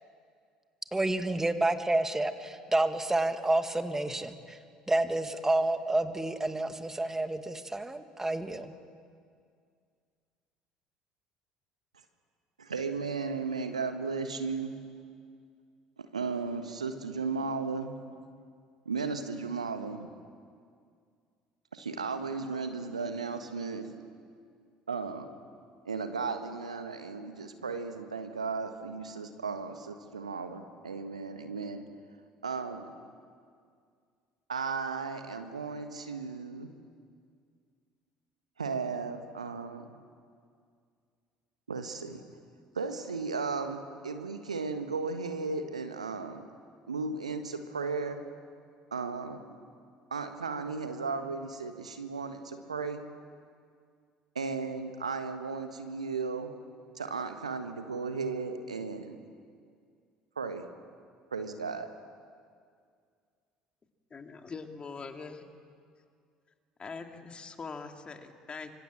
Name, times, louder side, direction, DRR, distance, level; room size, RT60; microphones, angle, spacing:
voice 1, 0.9-4.6 4.9-8.7, right 2 dB, 10° right, 9 dB, 2.1 m, -29 dB
voice 2, 12.6-14.7 16.0-17.9 18.8-20.1 21.7-23.9 24.9-25.3 25.8-31.8 32.4-32.9 34.5-36.7 38.6-39.9 41.7-42.2 42.7-46.4 46.9-48.2 48.9-49.4 50.1-53.1 54.3-56.5 56.9-59.2 60.4-60.6 61.3-61.9, right 4 dB, 85° right, 8 dB, 1.5 m, -35 dB
voice 3, 64.1-65.5 66.8-68.7, left 4 dB, 30° left, 5 dB, 2.6 m, -42 dB
25.5 x 25.0 x 7.7 m, 2.2 s
figure-of-eight pair, 60°, 3 cm